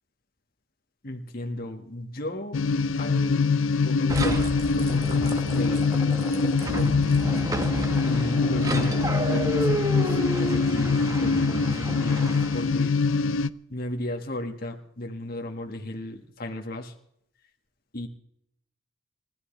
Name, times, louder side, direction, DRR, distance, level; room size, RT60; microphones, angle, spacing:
voice 1, 1.0-2.6 2.9-7.0 8.0-13.0 13.7-16.9 17.9-18.1, left 1 dB, 50° left, 3 dB, 1.7 m, -35 dB
sound 1, 2.5-13.5, left 4 dB, 85° left, 0.6 m, -24 dB
sound 2, 4.1-12.8, right 1 dB, 20° right, 1.3 m, -31 dB
29.5 x 14.0 x 3.3 m, 0.73 s
head